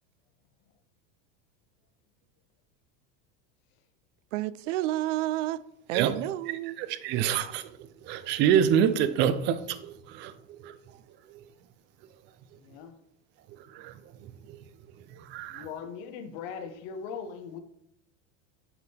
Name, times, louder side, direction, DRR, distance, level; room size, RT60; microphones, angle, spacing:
voice 1, 4.3-5.6 5.9-6.8, right 15 dB, 85° right, 0.5 m, -30 dB
voice 2, 6.8-7.7 8.0-10.8 11.3-11.4 13.7-13.9 14.2-14.6 15.2-15.6, right 9 dB, 30° right, 0.4 m, -27 dB
voice 3, 12.5-13.0 15.5-17.6, left 6 dB, 55° left, 1.0 m, -39 dB
9.7 x 3.6 x 4.3 m
supercardioid pair, 160°, 36 cm